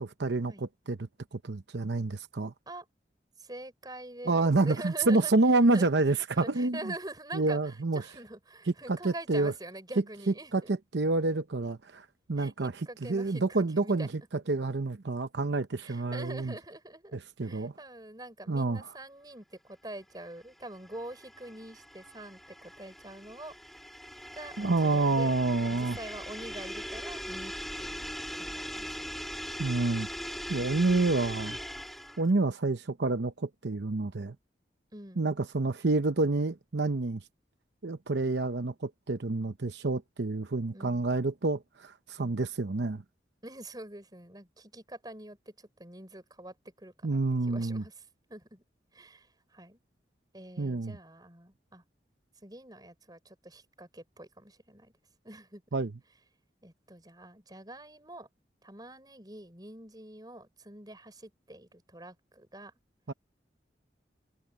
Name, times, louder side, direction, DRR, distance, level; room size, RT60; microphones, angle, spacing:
voice 1, 0.0-2.5 4.3-6.9 7.3-8.0 8.9-9.5 10.3-14.1 14.5-16.5 17.1-17.7 18.5-18.9 24.6-26.0 29.6-30.1 30.5-31.6 32.2-34.4 35.2-37.2 37.8-43.0 47.0-47.8 50.6-51.0 55.7-55.9 63.1-63.2, right 3 dB, 80° right, 0.8 m, -28 dB
voice 2, 3.4-5.3 5.7-10.7 12.4-12.5 12.9-14.1 15.8-23.5 24.3-25.3 25.6-27.5 27.8-29.1 34.9-35.3 40.7-41.0 42.2-42.4 43.4-47.2 47.5-48.0 48.3-48.6 48.9-49.8 50.3-51.8 52.4-54.9 55.2-55.6 56.6-58.3 58.6-62.7, right 1 dB, 20° right, 6.2 m, -45 dB
sound 1, 20.4-32.3, equal, ahead, 4.5 m, -40 dB
head